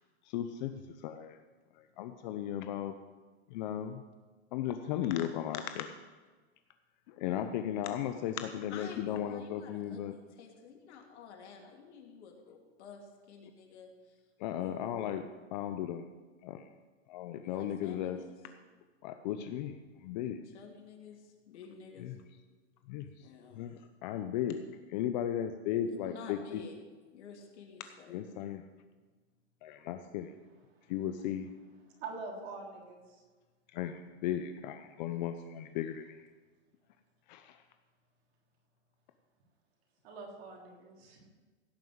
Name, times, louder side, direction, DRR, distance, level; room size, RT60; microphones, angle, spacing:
voice 1, 0.3-0.7 1.0-1.4 2.0-3.0 3.5-4.0 4.5-5.9 7.1-10.1 14.4-16.1 16.4-16.6 17.1-18.2 19.0-19.7 20.0-20.4 22.9-23.1 23.6-23.7 24.0-24.6 24.9-26.4 28.1-28.6 29.6-30.3 30.9-31.5 33.7-36.2 37.3-37.6, left 10 dB, 40° left, 9 dB, 0.6 m, -35 dB
voice 2, 8.7-14.2 14.6-14.9 17.4-18.4 20.4-22.2 23.2-23.7 25.9-26.8 27.1-28.2 40.0-40.1, left 6 dB, 70° left, 1 dB, 3.0 m, -51 dB
voice 3, 32.0-33.2 40.0-41.3, right 3 dB, 60° right, 0 dB, 3.7 m, -45 dB
16.5 x 5.5 x 7.8 m, 1.4 s
supercardioid pair, 155°, 35 cm